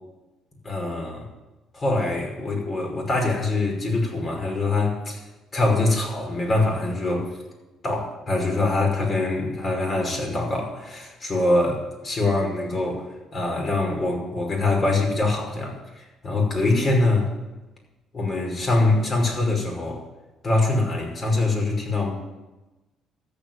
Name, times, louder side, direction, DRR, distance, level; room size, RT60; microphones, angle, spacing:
voice 1, 0.6-1.3 1.7-5.2 5.5-7.4 7.8-17.3 18.1-20.0 20.4-22.1, left 2 dB, 40° left, 1 dB, 5.5 m, -24 dB
13.5 x 8.4 x 9.3 m, 1.1 s
cardioid pair, 90°, 0 cm